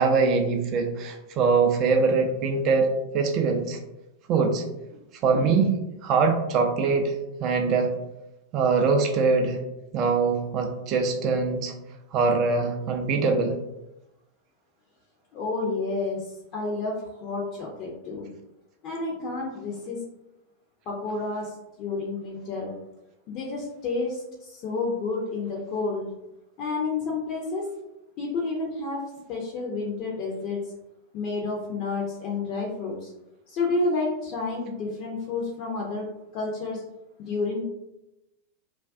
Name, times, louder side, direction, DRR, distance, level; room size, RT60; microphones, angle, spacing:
voice 1, 0.0-2.9 3.1-3.8 4.3-4.7 5.2-5.7 6.0-7.9 8.5-9.6 9.9-11.7 12.1-13.6, right 4 dB, 40° right, 3 dB, 0.3 m, -23 dB
voice 2, 15.3-18.3 18.8-20.0 20.9-22.7 23.3-26.1 26.6-27.7 28.2-29.0 29.3-30.6 31.1-33.1 33.5-36.0 36.3-36.8 37.2-37.6, left 3 dB, 40° left, -2 dB, 0.5 m, -30 dB
2.3 x 2.2 x 2.4 m, 0.91 s
figure-of-eight pair, 90°, 0 cm